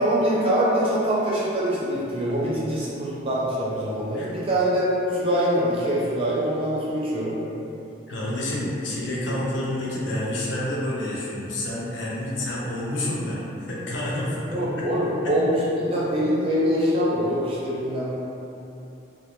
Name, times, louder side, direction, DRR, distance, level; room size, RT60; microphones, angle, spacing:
voice 1, 0.0-7.4 9.3-9.4 14.5-18.1, equal, 30° right, -7 dB, 0.4 m, -24 dB
voice 2, 8.1-15.3, left 1 dB, 75° left, -5 dB, 0.5 m, -29 dB
2.2 x 2.1 x 3.0 m, 2.8 s
head